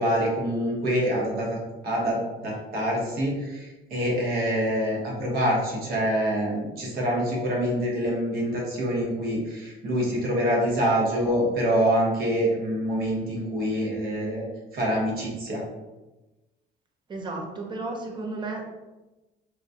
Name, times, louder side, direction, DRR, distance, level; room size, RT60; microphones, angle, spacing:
voice 1, 0.0-1.6 1.8-14.5 14.7-15.6, equal, 65° right, -2 dB, 1.2 m, -26 dB
voice 2, 17.1-18.6, right 3 dB, 25° right, 2 dB, 0.6 m, -33 dB
4.0 x 2.2 x 2.6 m, 1.1 s
cardioid pair, 110°, 17 cm